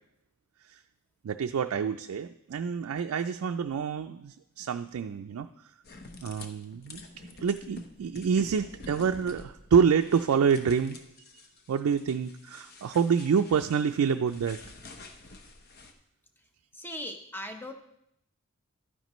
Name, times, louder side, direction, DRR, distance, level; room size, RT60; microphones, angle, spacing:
voice 1, 1.2-5.5 6.2-7.0 7.3-11.0 11.7-14.6, right 6 dB, 75° right, 6 dB, 0.4 m, -27 dB
sound 1, 5.8-15.9, left 2 dB, 45° left, 0.8 m, -48 dB
voice 2, 16.7-17.7, left 1 dB, 10° left, 5 dB, 0.8 m, -38 dB
11.5 x 9.3 x 3.1 m, 0.77 s
head